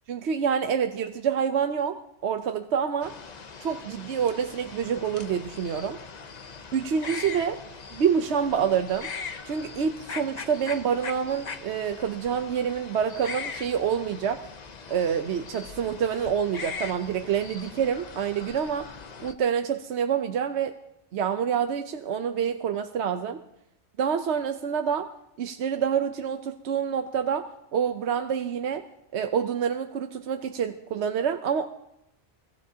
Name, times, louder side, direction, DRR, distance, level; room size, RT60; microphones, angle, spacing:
voice 1, 0.1-3.1 3.6-6.0 6.7-7.6 7.9-9.1 9.5-14.4 14.9-18.9 19.2-20.8 21.1-23.4 24.0-25.1 25.4-27.5 27.7-28.8 29.1-31.7, right 7 dB, 75° right, 7 dB, 1.0 m, -27 dB
sound 1, 3.0-19.3, left 5 dB, 40° left, 0.8 m, -40 dB
23.5 x 16.5 x 2.8 m, 0.82 s
omnidirectional pair, 1.2 m